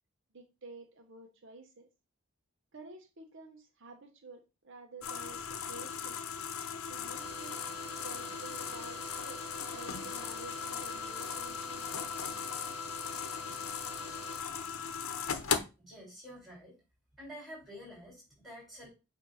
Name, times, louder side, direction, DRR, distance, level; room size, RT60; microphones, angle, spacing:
voice 1, 0.3-1.9 2.7-6.2 6.9-7.6 8.0-12.1 13.5-13.8, right 3 dB, 60° right, 5 dB, 0.9 m, -51 dB
sound 1, 5.0-15.6, left 7 dB, 90° left, 0.8 m, -38 dB
sound 2, 7.2-14.4, right 4 dB, 35° right, 1.7 m, -50 dB
voice 2, 15.8-16.7 17.2-18.9, equal, ahead, -4 dB, 4.4 m, -49 dB
7.5 x 2.7 x 5.4 m, 0.28 s
head